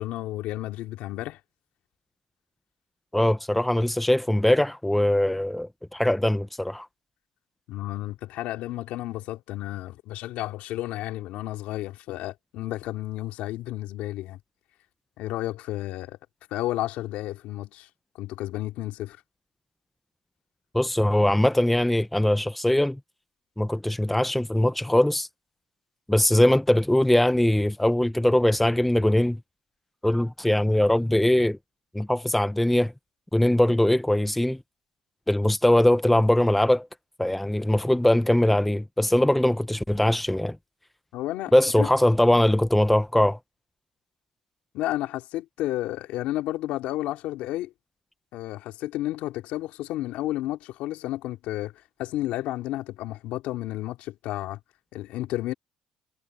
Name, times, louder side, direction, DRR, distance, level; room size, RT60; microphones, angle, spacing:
voice 1, 0.0-1.4 7.7-14.4 15.2-16.2 16.5-17.9 18.2-19.2 41.1-41.5 41.8-41.9 44.7-47.7 48.3-51.7 52.0-54.6 54.9-55.5, left 15 dB, 80° left, 3.2 m, -32 dB
voice 2, 3.1-6.9 20.7-23.0 23.6-25.3 26.1-29.4 30.0-31.6 31.9-32.9 33.3-34.6 35.3-36.9 37.2-40.6 41.5-43.4, left 1 dB, 5° left, 0.8 m, -21 dB
cardioid pair, 120°, 2 cm